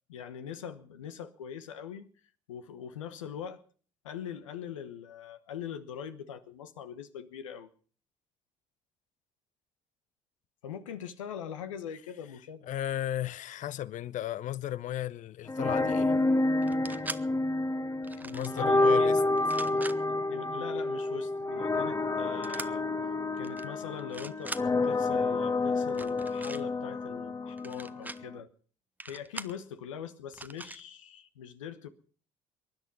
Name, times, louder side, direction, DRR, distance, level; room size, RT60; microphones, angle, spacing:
voice 1, 0.1-2.1 2.5-3.6 4.0-7.7 10.6-12.7 18.2-19.1 19.7-22.8 23.4-24.5 24.8-28.5 29.1-31.9, left 8 dB, 85° left, 1.1 m, -42 dB
voice 2, 12.7-16.1 18.3-19.2, left 12 dB, 50° left, 0.7 m, -35 dB
sound 1, 15.5-28.4, left 2 dB, 20° left, 1.2 m, -29 dB
sound 2, 16.6-17.2 18.0-18.6 19.4-20.0 22.4-22.7 23.4-23.6 24.0-24.6 25.9-26.6 27.6-28.2 29.0-29.6 30.3-30.8, right 2 dB, 10° right, 1.0 m, -41 dB
23.5 x 10.5 x 5.5 m
hypercardioid pair, 55°, 16 cm